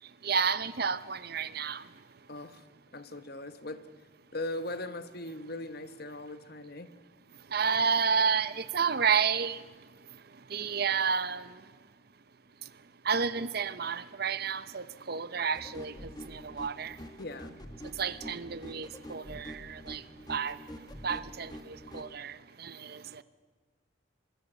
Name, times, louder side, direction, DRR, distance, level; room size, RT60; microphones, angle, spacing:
voice 1, 0.2-1.9 7.5-9.6 10.5-11.6 13.0-17.0 18.0-20.0 20.3-20.6 21.0-23.2, right 6 dB, 50° right, 0.7 m, -31 dB
voice 2, 2.3-2.6 2.9-3.8 4.3-6.9 17.2-17.5, left 2 dB, 50° left, 1.2 m, -39 dB
sound 1, 15.5-22.1, equal, 20° left, 1.4 m, -46 dB
24.5 x 22.0 x 8.0 m
head